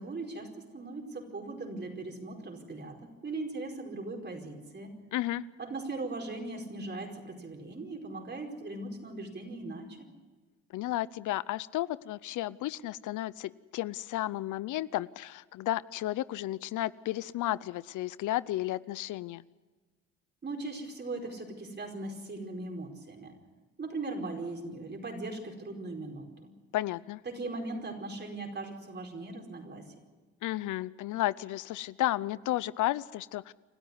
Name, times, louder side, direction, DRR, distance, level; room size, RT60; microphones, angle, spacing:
voice 1, 0.0-4.9 5.6-10.0 20.4-23.4 23.8-26.5 27.2-29.9, right 2 dB, 35° right, 3 dB, 4.8 m, -39 dB
voice 2, 5.1-5.4 10.7-19.4 26.7-27.2 30.4-33.5, left 15 dB, 80° left, 19 dB, 0.6 m, -33 dB
29.5 x 13.0 x 9.8 m, 1.3 s
cardioid pair, 90°, 30 cm